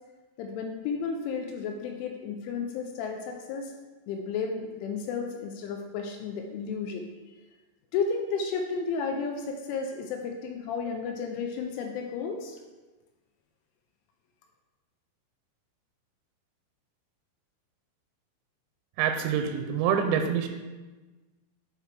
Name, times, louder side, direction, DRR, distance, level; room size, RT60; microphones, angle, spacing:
voice 1, 0.4-3.7 4.1-7.1 7.9-12.6, left 5 dB, 85° left, 3 dB, 2.9 m, -32 dB
voice 2, 19.0-20.5, right 7 dB, 90° right, 6 dB, 3.2 m, -26 dB
9.5 x 4.7 x 3.3 m, 1.2 s
omnidirectional pair, 5.8 m